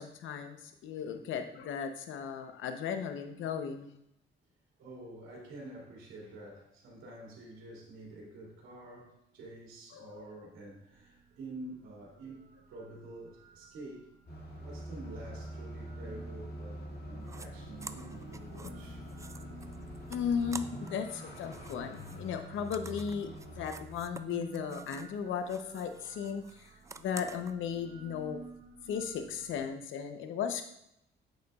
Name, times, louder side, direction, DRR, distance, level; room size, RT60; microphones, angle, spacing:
voice 1, 0.0-3.9 9.9-10.3 18.6-18.8 20.1-23.3 23.6-26.6 27.0-28.4 28.9-30.6, left 7 dB, 80° left, 7 dB, 0.8 m, -36 dB
voice 2, 4.8-14.2 14.6-19.0 20.0-20.1, right 2 dB, 85° right, -3 dB, 2.4 m, -48 dB
sound 1, 10.9-29.7, right 6 dB, 55° right, 0.9 m, -54 dB
sound 2, 14.3-24.1, equal, 50° left, 2.1 m, -45 dB
sound 3, 17.2-17.5 17.8-21.0 21.3-25.2 25.4-27.5, right 3 dB, 15° right, 0.4 m, -49 dB
8.2 x 8.1 x 2.4 m, 0.77 s
cardioid pair, 90°, 20 cm